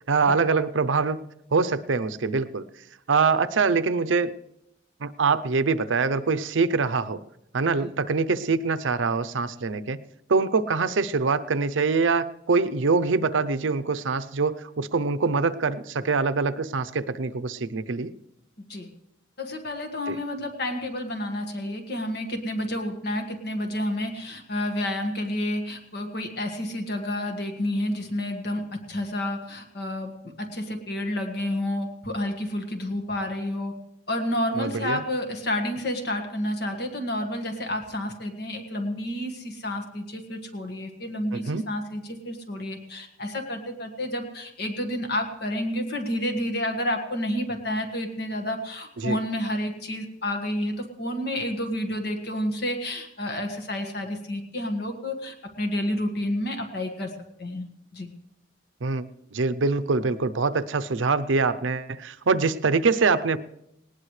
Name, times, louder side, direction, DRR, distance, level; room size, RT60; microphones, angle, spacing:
voice 1, 0.1-1.2 1.5-2.7 3.1-4.3 5.0-7.2 7.5-10.0 10.3-18.1 20.1-20.2 34.6-35.0 41.3-41.6 49.0-49.2 58.8-59.0 59.3-63.4, right 4 dB, 80° right, 13 dB, 0.6 m, -24 dB
voice 2, 19.4-33.7 34.1-57.1 57.4-57.7 57.9-58.1, left 1 dB, 55° left, 4 dB, 1.7 m, -30 dB
19.0 x 19.0 x 3.2 m, 0.82 s
head